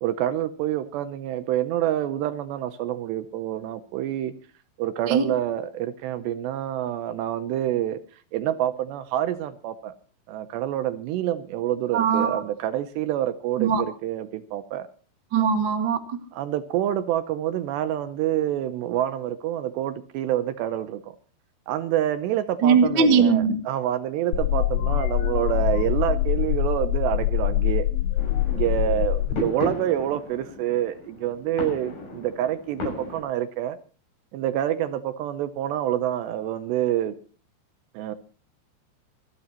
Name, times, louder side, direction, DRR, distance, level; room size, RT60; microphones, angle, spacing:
voice 1, 0.0-4.3 4.8-9.9 10.3-14.9 16.3-21.2 21.7-27.9 28.5-33.8 34.3-37.1 37.9-38.1, right 12 dB, 75° right, 12 dB, 2.7 m, -27 dB
voice 2, 11.9-12.4 13.6-13.8 15.3-16.2 22.6-23.5, right 5 dB, 50° right, 6 dB, 1.4 m, -20 dB
sound 1, 24.3-29.3, left 14 dB, 80° left, 2.4 m, -24 dB
sound 2, 28.2-33.2, left 3 dB, 45° left, 8.4 m, -35 dB
26.5 x 11.5 x 2.9 m, 0.38 s
omnidirectional pair, 5.5 m